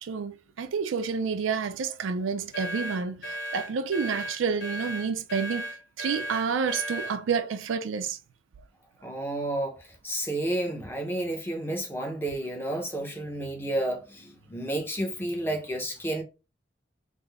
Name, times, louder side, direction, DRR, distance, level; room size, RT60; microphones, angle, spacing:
voice 1, 0.0-8.2, right 5 dB, 85° right, 0.4 m, -29 dB
sound 1, 2.5-7.2, right 1 dB, 65° left, 0.9 m, -35 dB
voice 2, 9.0-9.8 10.0-16.2, right 1 dB, 10° left, 0.6 m, -31 dB
3.6 x 2.0 x 3.3 m
head